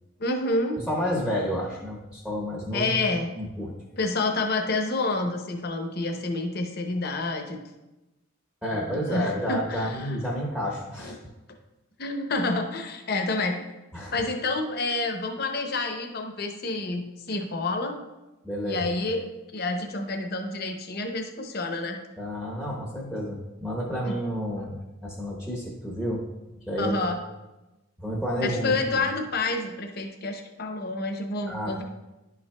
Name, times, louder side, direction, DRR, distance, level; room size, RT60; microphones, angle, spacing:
voice 1, 0.2-0.8 2.7-3.3 3.9-7.6 8.7-10.2 11.0-11.2 12.0-13.6 14.1-18.0 18.6-22.0 24.0-24.2 26.8-27.2 28.4-31.8, left 2 dB, 45° left, 4 dB, 0.8 m, -28 dB
voice 2, 0.9-3.1 3.3-3.7 8.6-11.2 13.9-14.2 18.4-18.9 22.2-26.2 26.7-27.1 28.0-28.7 31.5-31.8, equal, 5° right, -2 dB, 0.9 m, -30 dB
11.0 x 5.9 x 2.2 m, 1.0 s
head